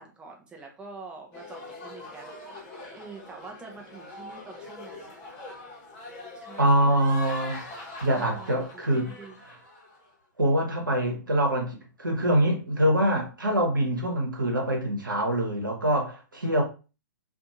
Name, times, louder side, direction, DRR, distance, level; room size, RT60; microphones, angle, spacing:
voice 1, 0.0-2.4 2.9-5.1 6.3-7.1 8.1-9.4, right 4 dB, 10° right, 0.5 m, -45 dB
sound 1, 1.3-10.1, left 2 dB, 35° left, 0.9 m, -42 dB
voice 2, 6.6-7.6 8.0-9.1 10.4-16.6, right 1 dB, 85° right, 0.9 m, -24 dB
2.5 x 2.4 x 2.7 m
figure-of-eight pair, 115°, 11 cm